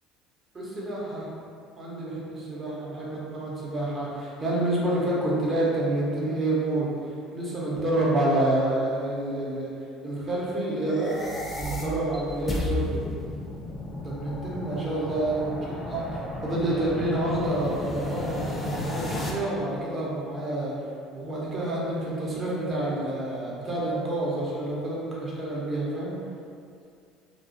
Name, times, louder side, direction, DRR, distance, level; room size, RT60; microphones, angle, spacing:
voice 1, 0.5-1.3 1.8-9.7 10.0-11.2 11.5-13.0 14.0-15.6 15.8-20.7 21.1-26.1, right 1 dB, 30° right, -6 dB, 0.7 m, -28 dB
sound 1, 10.8-19.3, left 2 dB, 15° left, 0.4 m, -33 dB
2.3 x 2.0 x 2.6 m, 2.4 s
supercardioid pair, 90°, 0 cm